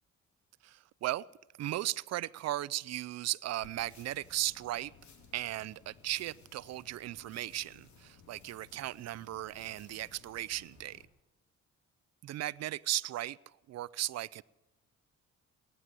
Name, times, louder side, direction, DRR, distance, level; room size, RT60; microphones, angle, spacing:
voice 1, 0.6-1.2 1.6-4.9 5.3-11.0 12.2-14.4, right 14 dB, 60° right, 0.5 m, -36 dB
sound 1, 3.6-11.0, left 5 dB, 70° left, 2.6 m, -59 dB
18.5 x 9.8 x 7.6 m
cardioid pair, 90°, 30 cm